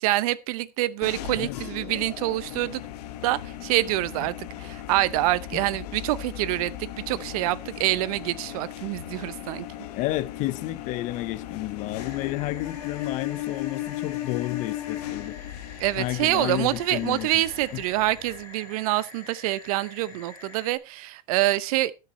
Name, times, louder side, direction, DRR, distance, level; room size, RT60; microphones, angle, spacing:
voice 1, 0.0-2.8 3.2-9.7 15.8-21.9, right 17 dB, 65° right, 0.7 m, -26 dB
sound 1, 1.0-18.4, left 13 dB, 75° left, 1.3 m, -37 dB
voice 2, 1.3-1.6 5.5-5.6 9.9-15.4 16.0-17.3 17.7-17.8, left 17 dB, 40° left, 0.7 m, -31 dB
sound 2, 11.9-20.8, left 3 dB, 15° left, 4.1 m, -47 dB
14.0 x 6.5 x 4.2 m
supercardioid pair, 155°, 20 cm